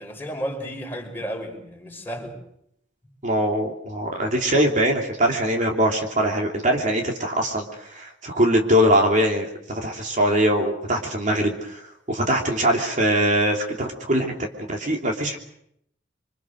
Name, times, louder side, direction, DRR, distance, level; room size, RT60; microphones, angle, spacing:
voice 1, 0.0-2.3, equal, 10° left, 5.4 m, -33 dB
voice 2, 3.2-7.6 7.9-11.8 12.1-14.3 14.7-15.4, equal, 45° right, 2.9 m, -22 dB
28.0 x 24.5 x 6.5 m
head